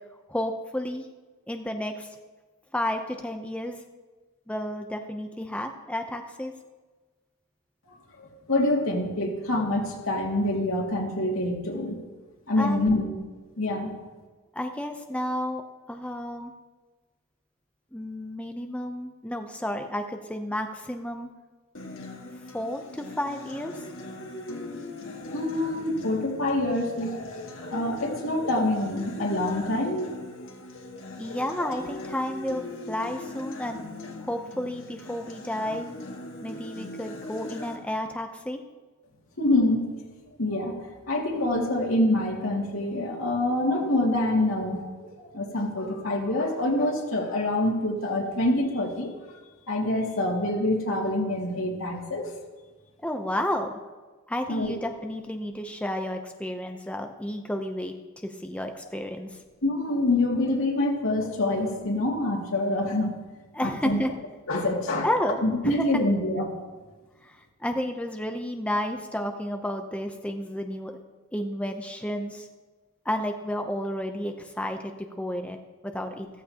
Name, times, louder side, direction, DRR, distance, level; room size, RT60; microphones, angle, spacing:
voice 1, 0.3-1.1 1.5-2.1 2.7-3.8 4.5-6.5 12.6-13.1 14.5-15.6 15.9-16.5 17.9-21.3 22.5-23.7 31.2-33.8 34.3-35.8 36.4-38.6 53.0-53.8 54.3-58.0 58.2-59.4 63.5-64.1 65.0-65.9 67.2-71.0 71.3-72.5 73.0-76.3, left 1 dB, 5° left, 4 dB, 0.6 m, -31 dB
voice 2, 8.2-12.0 12.5-13.1 13.6-13.9 25.3-30.5 30.7-30.9 31.2-31.7 39.4-39.9 40.4-40.8 41.1-49.1 49.7-52.3 54.5-54.8 59.6-63.1 63.6-64.0 64.5-65.1 65.4-66.5, left 1 dB, 90° left, -1 dB, 2.4 m, -26 dB
Acoustic guitar, 21.7-37.8, left 1 dB, 70° left, 1.7 m, -40 dB
14.0 x 14.0 x 2.9 m, 1.3 s
head